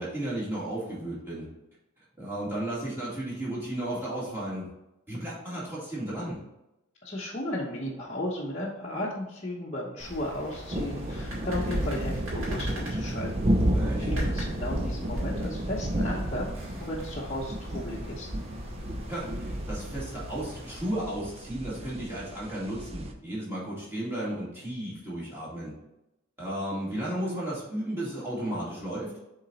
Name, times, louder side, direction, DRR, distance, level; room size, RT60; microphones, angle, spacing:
voice 1, 0.0-1.5 2.2-4.7 5.1-6.4 13.7-14.1 14.4-14.5 19.1-25.7 26.4-29.1, right 1 dB, 10° right, -8 dB, 2.4 m, -34 dB
voice 2, 7.0-13.5 14.0-18.3, left 1 dB, 30° left, -6 dB, 0.9 m, -35 dB
sound 1, 10.0-20.9, equal, 65° right, 2.3 m, -42 dB
sound 2, 10.7-23.1, right 1 dB, 25° right, 0.5 m, -32 dB
7.2 x 3.9 x 4.1 m, 0.89 s
head